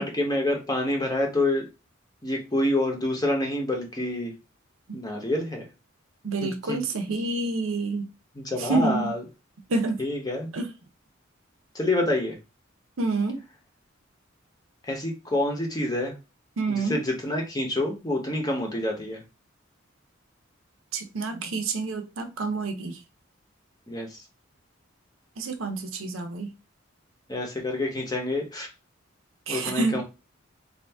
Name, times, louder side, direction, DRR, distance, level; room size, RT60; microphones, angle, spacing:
voice 1, 0.0-1.7 2.2-4.3 4.9-5.7 6.4-6.8 8.3-9.2 10.0-10.5 11.7-12.4 14.9-16.2 16.7-19.2 23.9-24.2 27.3-28.7 29.5-30.0, left 1 dB, 20° left, 0.9 m, -27 dB
voice 2, 6.2-8.1 8.6-9.1 9.7-10.0 10.5-10.7 13.0-13.4 16.6-17.0 20.9-23.0 25.4-26.5 29.5-30.0, right 3 dB, 90° right, 0.7 m, -28 dB
2.7 x 2.6 x 3.5 m
head